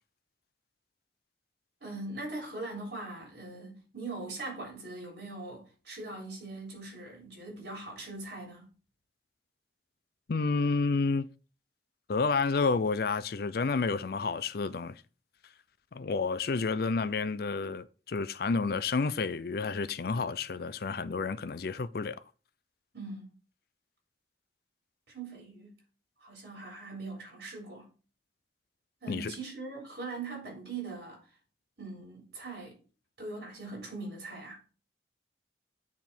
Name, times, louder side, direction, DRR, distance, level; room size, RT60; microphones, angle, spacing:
voice 1, 1.8-8.7 22.9-23.3 25.1-25.7 26.2-27.9 29.0-31.2 31.8-32.8 33.2-34.6, right 3 dB, 65° right, 3.7 m, -41 dB
voice 2, 10.3-11.3 12.1-14.9 15.9-22.2 29.1-29.3, left 4 dB, 55° left, 0.5 m, -30 dB
9.6 x 3.6 x 4.5 m
head